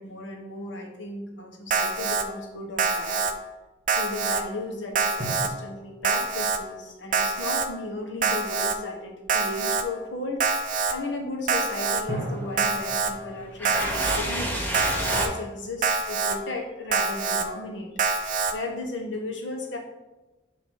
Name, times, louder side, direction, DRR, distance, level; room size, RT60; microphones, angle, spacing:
voice 1, 0.0-3.2 3.9-19.8, left 2 dB, 70° left, 1 dB, 1.2 m, -35 dB
Alarm, 1.7-2.2 2.8-3.3 3.9-4.4 5.0-5.5 6.0-6.6 7.1-7.7 8.2-8.8 9.3-9.8 10.4-10.9 11.5-12.0 12.6-13.1 13.7-14.2 14.7-15.3 15.8-16.4 16.9-17.5 18.0-18.5, right 4 dB, 40° right, 0.4 m, -25 dB
sound 1, 5.2-8.0 12.1-15.3, right 1 dB, 20° right, 1.9 m, -39 dB
sound 2, 12.2-15.3, equal, 10° left, 1.0 m, -31 dB
7.1 x 3.0 x 5.5 m, 1.1 s
head